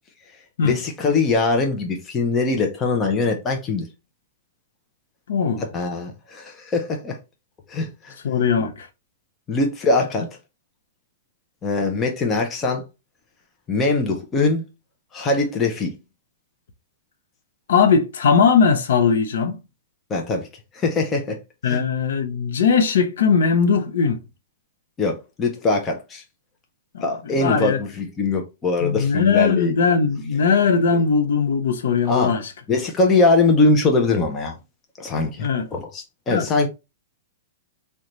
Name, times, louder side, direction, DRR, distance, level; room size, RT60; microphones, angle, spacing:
voice 1, 0.6-3.9 5.6-7.2 7.7-8.2 9.5-10.3 11.6-12.8 13.7-14.6 15.1-15.9 20.1-20.5 20.7-21.4 21.6-21.8 25.0-26.2 27.0-29.8 32.1-32.3 32.7-34.6 35.0-36.7, left 3 dB, 15° left, 0.4 m, -22 dB
voice 2, 5.3-5.6 8.2-8.9 17.7-19.6 21.6-24.2 26.9-27.0 27.4-27.8 28.8-32.5 35.4-35.7 36.3-36.5, left 5 dB, 70° left, 0.6 m, -19 dB
3.8 x 2.2 x 3.0 m
supercardioid pair, 180°, 0 cm